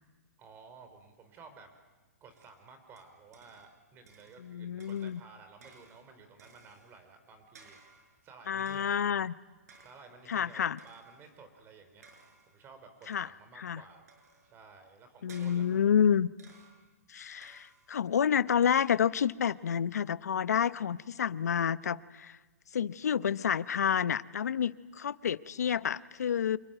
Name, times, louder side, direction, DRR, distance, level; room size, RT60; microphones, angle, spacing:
voice 1, 0.4-1.7 2.2-9.0 9.8-12.0 12.5-14.1 14.5-15.8, right 4 dB, 25° right, 7 dB, 4.5 m, -54 dB
sound 1, 2.3-3.8 4.1-4.5 4.8-7.1 7.5-8.2 8.7-9.2 9.7-10.3 10.8-11.4 12.0-12.7 14.1-14.6 15.3-16.0 16.4-17.0 17.4-18.0, right 4 dB, 75° right, 6.5 m, -59 dB
voice 2, 4.4-5.2 8.5-9.3 10.3-10.8 13.1-13.3 13.6-13.8 15.2-16.3 17.1-22.4 22.7-26.6, left 8 dB, 80° left, 17 dB, 0.8 m, -29 dB
27.5 x 21.0 x 9.2 m, 1.2 s
hypercardioid pair, 135°, 9 cm